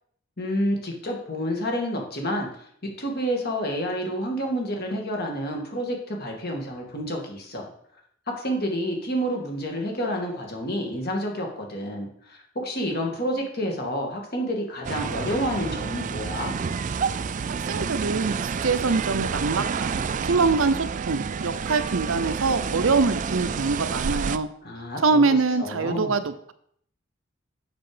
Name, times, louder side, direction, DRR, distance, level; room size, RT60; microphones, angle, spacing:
voice 1, 0.4-2.7 3.0-7.6 8.3-16.6 24.6-26.1, equal, 50° left, 1 dB, 2.1 m, -29 dB
sound 1, 14.8-24.4, right 5 dB, 35° right, 0.3 m, -29 dB
voice 2, 17.7-24.5 25.0-26.5, right 4 dB, 70° right, 11 dB, 0.7 m, -24 dB
8.0 x 6.6 x 5.1 m, 0.65 s
head